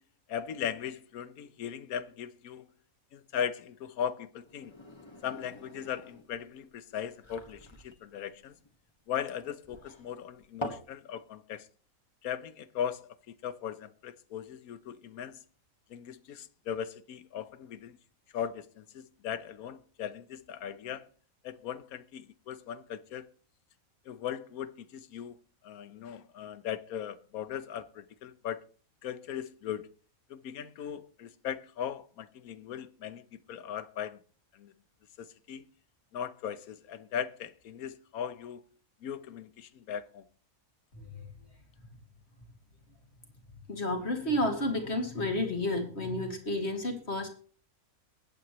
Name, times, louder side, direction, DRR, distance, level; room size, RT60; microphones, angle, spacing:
voice 1, 0.3-2.7 3.1-4.7 5.2-8.5 9.1-11.7 12.2-15.4 15.9-18.0 18.3-21.1 21.4-23.3 24.1-25.4 25.6-28.6 29.0-29.9 30.3-34.2 34.5-34.7 35.2-35.6 36.1-38.6 39.0-40.2, left 9 dB, 90° left, 1.3 m, -38 dB
sound 1, 4.4-10.9, left 1 dB, 20° left, 1.6 m, -45 dB
voice 2, 40.9-41.2 43.7-47.3, left 1 dB, 50° left, 2.6 m, -31 dB
22.0 x 8.7 x 3.1 m
omnidirectional pair, 1.5 m